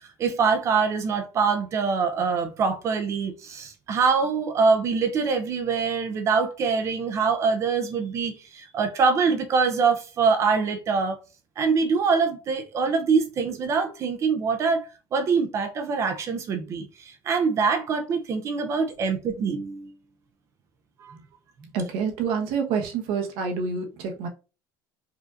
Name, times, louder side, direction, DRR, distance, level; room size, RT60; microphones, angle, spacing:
voice 1, 0.2-11.2 11.6-14.9 15.1-19.9 21.0-21.2, right 5 dB, 30° right, 0.5 m, -24 dB
voice 2, 21.7-24.3, right 5 dB, 65° right, 1.0 m, -27 dB
4.9 x 2.7 x 2.4 m
cardioid pair, 165°, 10 cm